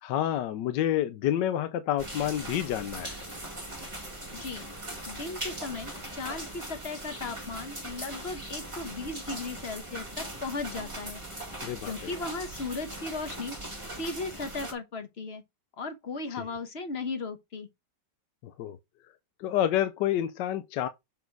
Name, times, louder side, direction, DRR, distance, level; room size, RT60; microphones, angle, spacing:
voice 1, 0.0-3.2 11.6-12.1 16.3-16.5 18.4-18.8 19.4-20.9, left 11 dB, 75° left, 1.2 m, -29 dB
sound 1, 2.0-14.7, right 1 dB, 15° right, 1.6 m, -40 dB
voice 2, 4.3-4.7 5.1-11.2 11.8-13.6 13.9-15.4 15.8-17.7, left 3 dB, 40° left, 1.2 m, -36 dB
6.8 x 4.2 x 4.6 m
omnidirectional pair, 2.1 m